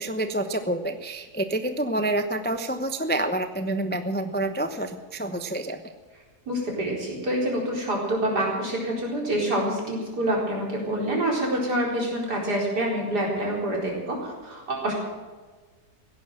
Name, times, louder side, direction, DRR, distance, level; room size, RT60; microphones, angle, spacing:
voice 1, 0.0-5.8, right 1 dB, 10° left, 8 dB, 0.5 m, -28 dB
voice 2, 6.5-14.9, right 1 dB, 75° right, -2 dB, 4.9 m, -27 dB
16.5 x 10.5 x 7.6 m, 1.4 s
omnidirectional pair, 1.8 m